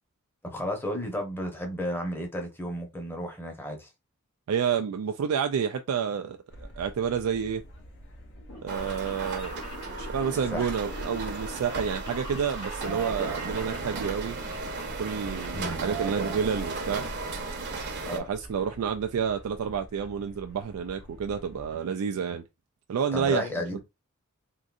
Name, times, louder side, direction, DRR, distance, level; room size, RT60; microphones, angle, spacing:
voice 1, 0.4-3.9 10.5-10.7 15.5-15.8 18.0-18.3 23.1-23.8, left 1 dB, 10° left, 0.9 m, -33 dB
voice 2, 4.5-7.6 8.6-9.6 10.0-14.4 15.0-17.1 18.1-22.4 22.9-23.5, right 7 dB, 85° right, 0.3 m, -29 dB
sound 1, 6.5-21.7, equal, 55° left, 0.9 m, -48 dB
sound 2, 8.3-16.1 16.4-17.1 17.4-18.5 18.7-18.8 19.7-19.8 20.0-20.1 20.4-20.5 20.8-21.1 21.4-21.5 21.7-21.8, left 1 dB, 80° left, 1.4 m, -45 dB
sound 3, 8.7-18.2, right 3 dB, 50° right, 0.8 m, -35 dB
3.7 x 2.6 x 2.4 m
head